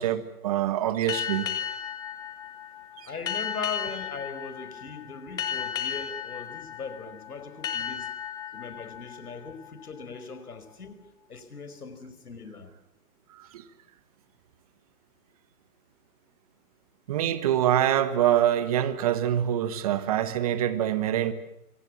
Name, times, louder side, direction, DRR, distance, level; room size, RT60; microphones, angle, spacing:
voice 1, 0.0-1.5 3.0-3.1 13.3-13.6 17.1-21.3, right 11 dB, 25° right, 1.4 m, -25 dB
sound 1, 1.1-10.4, left 9 dB, 10° left, 1.6 m, -35 dB
voice 2, 3.0-8.1 8.5-11.0 11.3-12.7, left 4 dB, 75° left, 5.1 m, -39 dB
27.0 x 23.5 x 7.5 m
hypercardioid pair, 155°, 45 cm